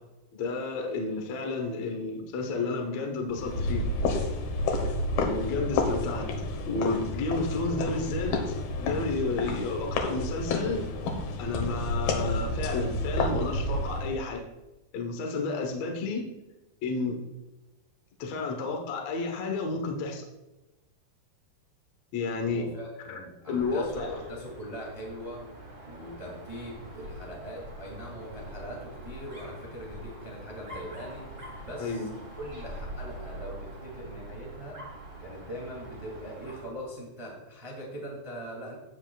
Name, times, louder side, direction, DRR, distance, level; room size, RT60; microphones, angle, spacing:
voice 1, 0.4-3.9 5.2-6.3 6.7-8.5 8.8-10.9 11.4-14.4 14.9-16.3 16.8-17.2 18.2-20.2 22.1-22.7 23.1-23.2 23.5-24.4 31.8-32.1, left 3 dB, 60° left, 2 dB, 2.0 m, -31 dB
sound 1, 3.3-14.2, left 2 dB, 90° left, 3.2 m, -30 dB
voice 2, 22.4-25.5 25.8-31.3 31.6-32.0 32.4-34.8 35.2-38.8, equal, 10° right, -2 dB, 1.7 m, -41 dB
Dog, 23.5-36.8, right 1 dB, 25° right, 1.2 m, -44 dB
15.0 x 9.1 x 2.4 m, 1.0 s
omnidirectional pair, 4.2 m